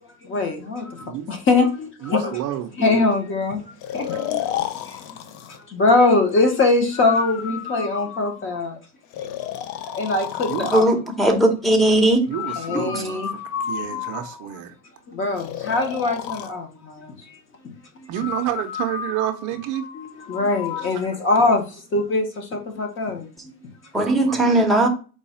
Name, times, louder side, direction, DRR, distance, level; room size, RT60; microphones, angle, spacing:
voice 1, 0.2-2.4 2.8-3.6 3.9-4.4 4.9-5.0 5.7-8.8 9.9-10.8 12.6-13.3 13.9-14.0 15.1-17.1 17.6-17.7 18.0-18.1 19.9-21.6 21.9-23.3 23.6-23.7, left 3 dB, 30° left, 0.9 m, -22 dB
voice 2, 2.0-3.0 10.5-10.7 12.3-13.4 13.7-14.7 18.1-19.9 20.8-20.9 24.0-24.9, right 12 dB, 45° right, 0.6 m, -29 dB
Breathing, 3.8-5.6 6.9-8.6 9.1-10.9 12.3-14.6 15.4-16.5 18.1-21.0, left 10 dB, 45° left, 0.4 m, -32 dB
voice 3, 10.7-12.2 12.9-13.0 23.9-24.9, right 1 dB, ahead, 0.8 m, -18 dB
4.7 x 2.3 x 4.1 m
supercardioid pair, 140°, 42 cm